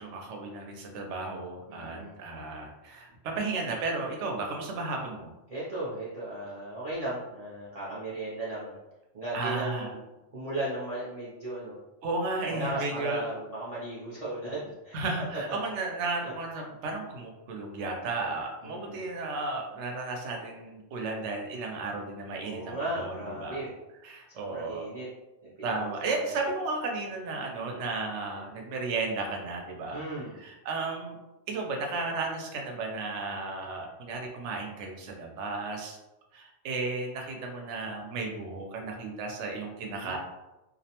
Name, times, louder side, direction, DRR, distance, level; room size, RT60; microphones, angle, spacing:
voice 1, 0.0-5.3 9.3-9.9 12.0-13.2 14.9-23.6 24.0-24.8 25.6-30.0 30.4-31.2 31.5-36.0 36.3-40.2, right 3 dB, 75° right, 1 dB, 0.9 m, -34 dB
voice 2, 1.7-2.2 5.5-8.8 9.1-10.0 10.3-11.8 12.4-15.0 15.5-15.6 16.2-16.3 18.6-19.1 22.4-23.7 24.4-25.1 25.4-26.4 27.6-27.8 29.9-30.4 39.8-40.2, right 1 dB, 40° right, -9 dB, 0.6 m, -36 dB
2.4 x 2.1 x 2.8 m, 1.0 s
omnidirectional pair, 1.2 m